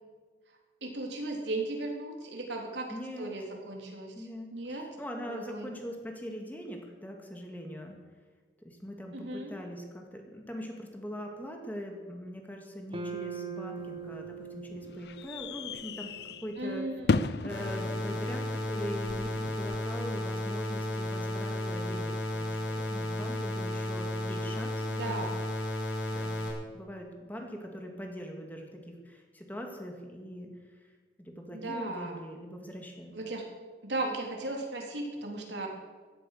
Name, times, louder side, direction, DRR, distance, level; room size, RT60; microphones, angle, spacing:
voice 1, 0.8-4.9 5.2-5.7 9.1-9.6 16.6-17.1 24.9-25.4 31.5-32.2 33.1-33.5 33.8-35.7, right 2 dB, 75° right, 1 dB, 3.4 m, -36 dB
voice 2, 2.9-3.3 4.1-8.0 8.6-16.1 16.4-16.9 17.4-25.3 26.1-26.4 26.7-30.9 31.2-33.2, equal, 10° left, 2 dB, 2.1 m, -42 dB
sound 1, 12.9-17.3, right 4 dB, 30° right, 1.1 m, -42 dB
sound 2, 13.8-19.8, left 3 dB, 60° left, 0.5 m, -36 dB
sound 3, 17.5-26.5, left 1 dB, 85° left, 5.6 m, -33 dB
16.5 x 12.5 x 6.7 m, 1.5 s
head